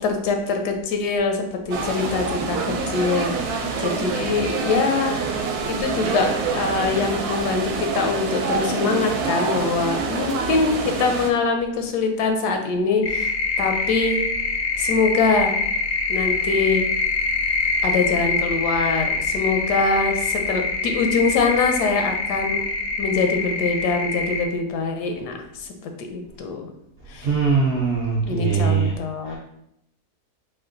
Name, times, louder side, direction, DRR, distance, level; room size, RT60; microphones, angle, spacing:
voice 1, 0.0-2.6 2.9-3.3 3.8-5.2 5.6-13.3 13.6-14.2 14.8-15.5 16.1-16.9 17.8-22.6 23.0-26.7 27.1-27.3 28.3-29.4, left 4 dB, 85° left, 5 dB, 1.2 m, -23 dB
sound 1, 1.7-11.3, right 4 dB, 75° right, 1.1 m, -26 dB
sound 2, 13.0-24.5, left 4 dB, 70° left, 0.7 m, -24 dB
voice 2, 27.2-28.9 29.3-29.4, right 5 dB, 60° right, -4 dB, 0.6 m, -21 dB
4.2 x 2.2 x 3.7 m, 0.78 s
omnidirectional pair, 1.7 m